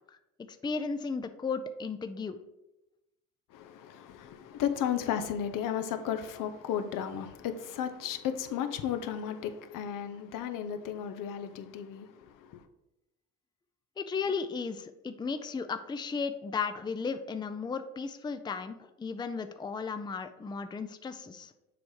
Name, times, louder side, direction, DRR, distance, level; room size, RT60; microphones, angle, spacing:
voice 1, 0.5-2.4 14.0-21.5, left 5 dB, 15° left, 0.4 m, -35 dB
voice 2, 3.5-12.6, left 9 dB, 70° left, 0.7 m, -34 dB
7.0 x 3.1 x 4.7 m
supercardioid pair, 70°, 34 cm